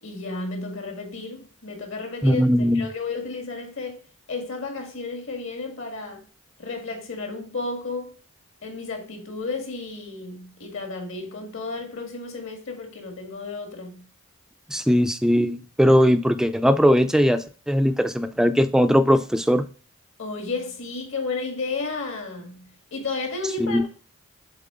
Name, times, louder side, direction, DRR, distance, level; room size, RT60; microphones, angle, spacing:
voice 1, 0.0-4.0 4.3-6.2 6.6-8.1 8.6-14.0 20.2-23.9, left 3 dB, 60° left, 2.0 m, -32 dB
voice 2, 2.2-2.9 14.7-19.6 23.7-23.8, equal, 5° right, 0.4 m, -19 dB
7.5 x 4.1 x 3.7 m
head